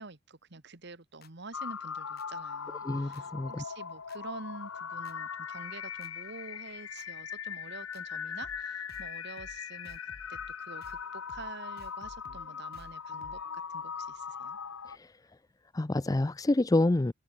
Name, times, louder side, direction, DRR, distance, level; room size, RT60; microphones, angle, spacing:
voice 1, 0.0-10.0 10.3-13.4 13.7-14.6, right 3 dB, 55° right, 1.7 m, -47 dB
sound 1, 1.2-1.3 2.2-2.3 3.1-3.2 4.1-4.2 5.0-5.1 6.0-6.1 7.0-7.1 7.9-8.0 8.4-8.6 8.9-9.1 9.4-9.6 9.8-10.5 10.8-11.0 11.3-11.5 11.8-13.6, left 2 dB, 50° left, 1.7 m, -54 dB
sound 2, 1.5-15.0, left 7 dB, 85° left, 1.1 m, -40 dB
voice 2, 2.8-3.6 14.9-15.2 15.7-17.1, left 2 dB, 15° left, 0.4 m, -28 dB
open air
head